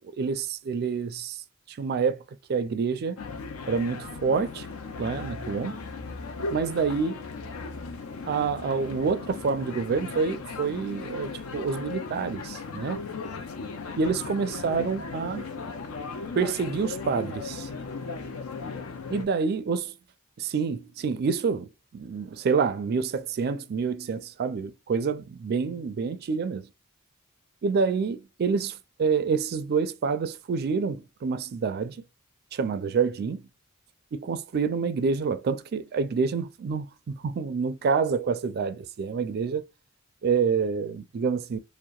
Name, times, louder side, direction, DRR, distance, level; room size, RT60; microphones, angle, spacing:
voice 1, 0.2-1.4 1.7-2.2 2.5-3.2 3.7-4.7 5.0-5.8 6.5-7.2 8.3-13.0 14.0-15.5 16.3-17.7 19.1-19.8 20.4-26.7 27.6-32.0 32.5-33.4 34.1-39.6 40.2-41.6, right 5 dB, 45° right, 0.3 m, -27 dB
sound 1, 3.2-19.2, left 4 dB, 75° left, 0.5 m, -37 dB
2.7 x 2.1 x 2.2 m
head